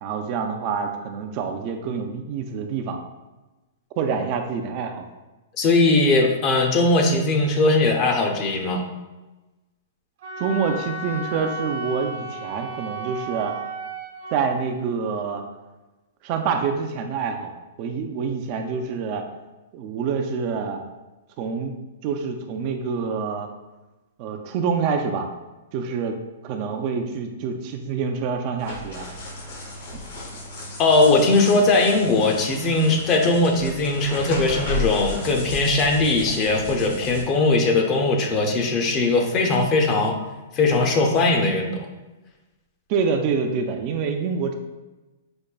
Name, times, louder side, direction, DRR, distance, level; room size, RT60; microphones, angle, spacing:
voice 1, 0.0-3.0 4.0-5.1 10.4-13.5 14.3-15.4 16.2-17.5 17.8-19.3 19.7-20.8 21.4-21.7 22.0-23.5 24.2-25.3 25.7-26.2 26.4-29.1 42.9-44.6, right 5 dB, 45° right, 5 dB, 0.3 m, -26 dB
voice 2, 5.6-8.9 30.8-40.2 40.5-41.9, left 2 dB, 35° left, 3 dB, 0.6 m, -20 dB
Wind instrument woodwind instrument, 10.2-14.4, right 2 dB, 65° right, 0.7 m, -33 dB
sound 1, 28.6-37.2, left 3 dB, 60° left, 0.9 m, -34 dB
5.2 x 2.1 x 2.3 m, 1.1 s
hypercardioid pair, 130°, 0 cm